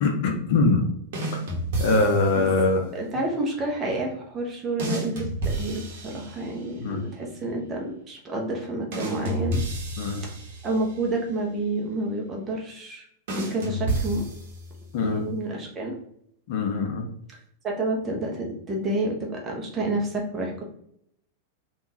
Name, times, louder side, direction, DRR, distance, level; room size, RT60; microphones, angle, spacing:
voice 1, 0.0-0.9 1.8-2.8 6.8-7.0 10.0-10.2 14.9-15.2 16.5-17.1, left 3 dB, 50° left, 2 dB, 0.6 m, -22 dB
sound 1, 1.1-2.5 4.8-6.8 8.9-11.1 13.3-14.9, right 1 dB, 55° right, 1.1 m, -31 dB
voice 2, 2.9-9.6 10.6-13.0 13.4-14.2 15.0-15.9 17.6-20.6, right 2 dB, 25° right, -1 dB, 0.8 m, -29 dB
3.6 x 2.5 x 2.8 m, 0.69 s
figure-of-eight pair, 95°, 0 cm